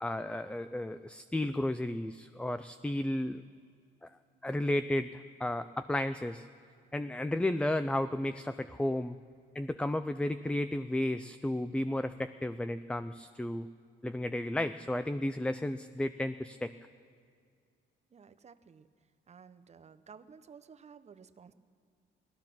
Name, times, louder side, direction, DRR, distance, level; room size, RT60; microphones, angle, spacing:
voice 1, 0.0-3.4 4.4-6.5 6.9-9.2 9.5-13.7 14.0-16.7, left 1 dB, 5° left, 11 dB, 0.3 m, -33 dB
voice 2, 18.1-18.9 19.3-21.5, right 6 dB, 35° right, 12 dB, 0.7 m, -54 dB
18.0 x 13.5 x 6.0 m, 2.2 s
cardioid pair, 90°, 20 cm